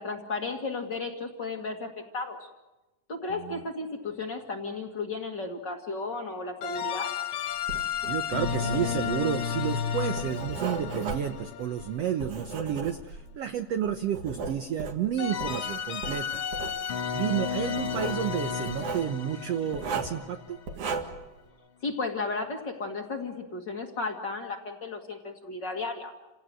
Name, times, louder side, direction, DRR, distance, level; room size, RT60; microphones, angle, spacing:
voice 1, 0.0-2.4 3.1-7.1 21.8-26.1, left 3 dB, 40° left, 3 dB, 2.0 m, -34 dB
sound 1, 6.6-12.6 15.2-21.0, left 7 dB, 75° left, 1.1 m, -33 dB
Writing, 7.6-13.4 13.9-15.6 16.0-16.8 17.8-18.2 18.7-19.1 19.7-20.2 20.7-21.3, right 4 dB, 60° right, 3.1 m, -36 dB
voice 2, 8.1-16.4 17.1-20.6, right 9 dB, 80° right, 8 dB, 1.4 m, -31 dB
29.0 x 17.5 x 7.8 m, 1.1 s
omnidirectional pair, 4.0 m